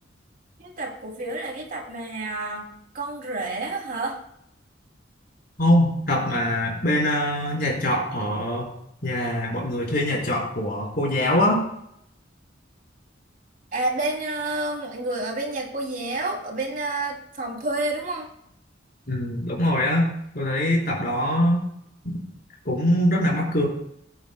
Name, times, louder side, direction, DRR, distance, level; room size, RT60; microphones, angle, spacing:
voice 1, 0.6-4.2 13.7-18.3, right 2 dB, 45° right, 0 dB, 2.8 m, -29 dB
voice 2, 5.6-8.7 9.0-11.6 19.1-21.6 22.0-22.2 22.6-23.7, left 1 dB, 50° left, -2 dB, 4.1 m, -23 dB
21.5 x 8.7 x 2.2 m, 0.74 s
head